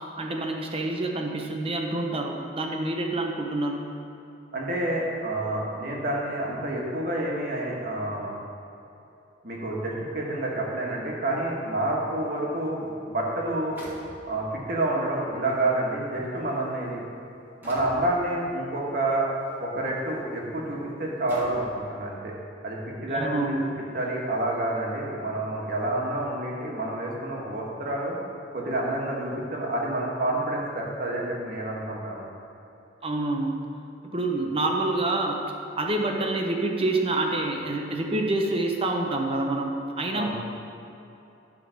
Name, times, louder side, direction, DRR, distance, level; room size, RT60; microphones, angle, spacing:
voice 1, 0.2-3.9 23.1-23.6 33.0-33.6 34.0-35.4 35.8-40.3, right 2 dB, 30° right, 2 dB, 0.8 m, -27 dB
voice 2, 4.5-8.3 9.4-13.8 14.3-17.0 17.6-19.3 19.6-22.3 22.6-28.2 28.5-32.2 40.1-40.3, right 1 dB, 55° right, -3 dB, 1.6 m, -28 dB
sound 1, 12.7-12.8 13.8-14.6 15.5-15.6 16.4-16.6 17.6-18.1 19.4-19.6 20.2-20.3 21.3-21.8, equal, 10° right, 1.7 m, -44 dB
11.5 x 3.8 x 6.5 m, 2.8 s
head